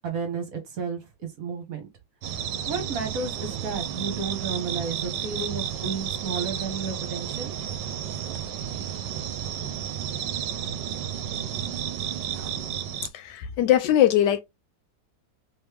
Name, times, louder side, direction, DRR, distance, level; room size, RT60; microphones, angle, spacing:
voice 1, 0.0-1.9 2.7-7.5, right 5 dB, 55° right, 1.3 m, -32 dB
sound 1, 2.2-13.1, right 9 dB, 80° right, 1.2 m, -32 dB
voice 2, 12.9-14.4, left 11 dB, 75° left, 1.2 m, -21 dB
3.5 x 3.1 x 3.3 m
omnidirectional pair, 2.0 m